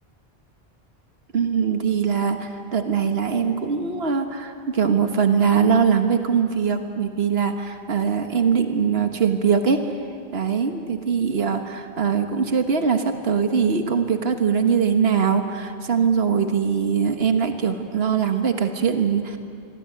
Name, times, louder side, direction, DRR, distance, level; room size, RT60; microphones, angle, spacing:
voice 1, 1.3-9.9 10.3-19.4, right 6 dB, 75° right, 6 dB, 1.7 m, -22 dB
26.0 x 22.5 x 9.6 m, 2.3 s
omnidirectional pair, 1.0 m